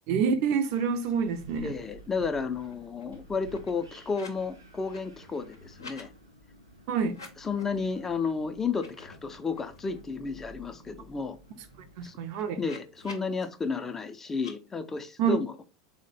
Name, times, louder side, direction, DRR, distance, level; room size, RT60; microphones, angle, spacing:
voice 1, 0.1-1.7 6.9-7.2 12.0-12.6 15.2-15.4, right 6 dB, 50° right, 0.4 m, -27 dB
sound 1, 1.0-1.1 1.4-2.1 2.4-4.5 4.8-6.1 7.0-7.8 8.2-8.3 8.7-10.0 10.4-10.5 10.8-13.4 14.3-14.5, left 3 dB, 80° left, 0.6 m, -51 dB
Wind, 1.0-12.0, right 1 dB, 85° right, 0.7 m, -53 dB
voice 2, 1.6-6.1 7.4-11.4 12.0-12.1 12.6-15.5, left 5 dB, 15° left, 0.3 m, -32 dB
3.8 x 2.1 x 3.1 m
figure-of-eight pair, 75°, 2 cm